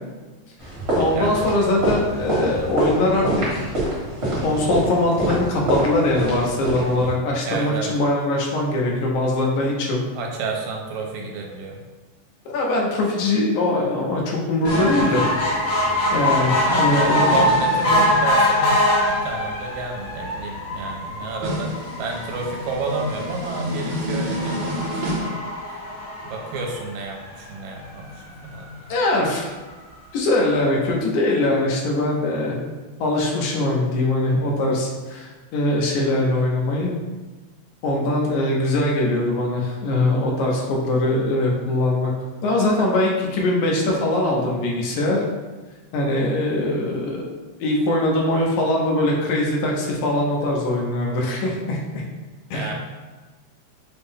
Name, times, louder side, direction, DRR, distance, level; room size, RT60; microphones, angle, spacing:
sound 1, 0.6-7.1, right 1 dB, 40° right, 0.9 m, -25 dB
voice 1, 1.0-3.7 4.4-10.0 12.5-15.3 16.1-17.4 28.9-29.5 30.1-32.6 33.0-36.9 37.8-42.1 42.4-45.2 45.9-47.2 47.6-52.0 52.5-52.7, left 1 dB, 85° left, -1 dB, 2.2 m, -22 dB
voice 2, 7.4-7.9 10.1-11.8 16.5-21.7 22.0-25.3 25.7-25.8 26.2-28.9 52.5-52.7, right 3 dB, 80° right, 0 dB, 2.0 m, -30 dB
sound 2, 14.6-27.2 27.8-27.9 28.2-28.3 28.5-28.6, left 1 dB, 65° left, 1.1 m, -23 dB
sound 3, 14.6-18.3 21.4-25.3, equal, 65° right, 1.3 m, -30 dB
6.0 x 2.1 x 3.4 m, 1.3 s
omnidirectional pair, 3.4 m